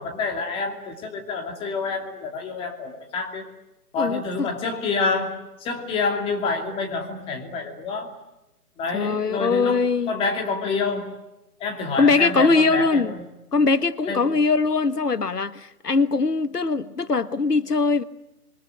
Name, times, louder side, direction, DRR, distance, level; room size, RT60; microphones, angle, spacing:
voice 1, 0.0-3.4 3.9-8.1 8.8-11.1 11.6-13.2 14.1-14.3, left 4 dB, 10° left, 2.6 m, -28 dB
voice 2, 4.0-4.5 8.9-10.1 12.0-13.1 13.5-18.0, left 4 dB, 80° left, 1.5 m, -21 dB
27.0 x 23.5 x 9.2 m
figure-of-eight pair, 145°, 47 cm